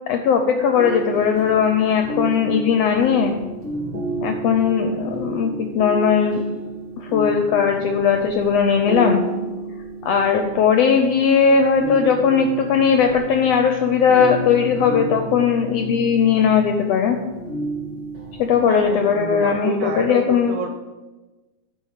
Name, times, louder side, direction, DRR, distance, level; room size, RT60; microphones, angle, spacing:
voice 1, 0.1-3.3 4.2-6.4 7.0-9.2 10.0-17.2 18.4-20.6, left 6 dB, 80° left, 5 dB, 1.5 m, -18 dB
sound 1, 0.7-18.9, right 2 dB, 35° right, 2.8 m, -31 dB
voice 2, 18.7-20.7, right 4 dB, 70° right, 4 dB, 1.7 m, -28 dB
10.0 x 4.7 x 6.5 m, 1.2 s
omnidirectional pair, 3.5 m